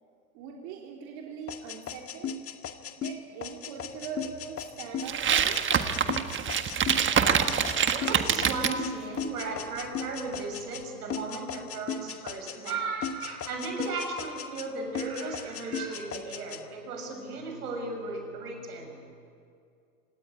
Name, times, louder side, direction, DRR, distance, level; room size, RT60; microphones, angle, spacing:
voice 1, 0.3-2.4 3.0-5.7, right 6 dB, 55° right, 0 dB, 3.6 m, -41 dB
sound 1, 1.5-10.8 11.1-12.8 13.0-14.7 14.9-16.6, left 7 dB, 30° left, 1.8 m, -37 dB
sound 2, 5.1-8.8, right 8 dB, 25° right, 1.6 m, -25 dB
voice 2, 7.9-19.0, right 3 dB, 85° right, 4 dB, 6.8 m, -35 dB
27.0 x 18.5 x 9.9 m, 2.4 s
hypercardioid pair, 100°, 44 cm